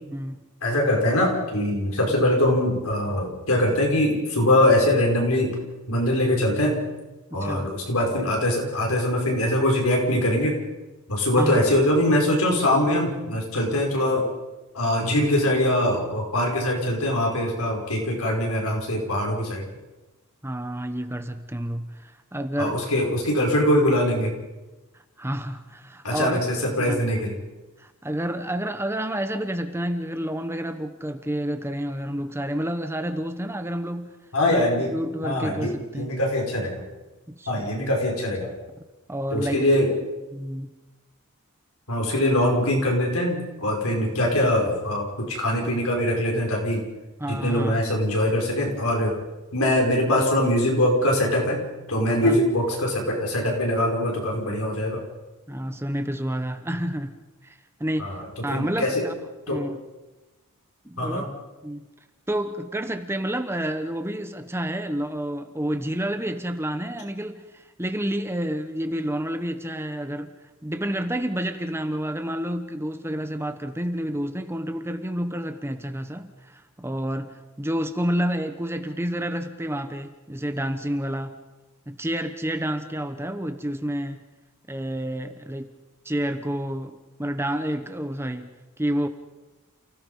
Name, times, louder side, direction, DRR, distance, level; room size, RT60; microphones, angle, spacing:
voice 1, 0.1-0.4 7.3-7.7 11.4-11.6 20.4-22.8 25.2-26.4 26.7-27.1 27.8-34.1 34.5-34.6 34.9-36.2 37.3-37.7 39.1-39.7 40.3-40.7 47.2-47.8 52.2-52.4 55.5-57.2 57.4-58.1 58.4-59.1 59.5-59.8 60.8-61.2 61.6-61.8 62.3-70.3 70.6-81.4 81.9-84.2 84.7-85.7 86.0-89.1, equal, 10° right, 8 dB, 1.0 m, -29 dB
voice 2, 0.6-5.5 5.9-6.8 7.3-10.6 11.1-14.3 14.7-19.6 22.6-24.3 26.0-27.3 34.3-34.9 35.2-36.8 37.5-38.5 39.3-39.9 41.9-46.8 47.3-49.1 49.5-51.6 51.9-55.0 58.0-58.3 58.5-59.0 59.5-59.6 61.0-61.3, left 1 dB, 75° left, 0 dB, 5.2 m, -22 dB
29.5 x 16.5 x 5.5 m, 1.1 s
head